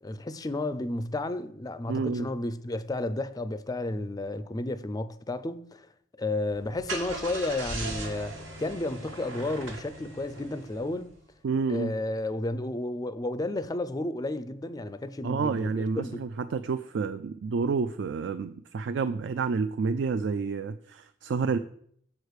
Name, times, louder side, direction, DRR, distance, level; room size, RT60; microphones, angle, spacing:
voice 1, 0.0-5.9 6.2-11.1 11.7-16.2, left 2 dB, 20° left, 0.4 m, -32 dB
voice 2, 1.9-2.3 11.4-11.9 15.2-21.6, right 5 dB, 60° right, 0.3 m, -29 dB
Car / Engine starting, 6.5-11.2, right 2 dB, 85° right, 1.6 m, -39 dB
7.2 x 4.8 x 6.4 m
head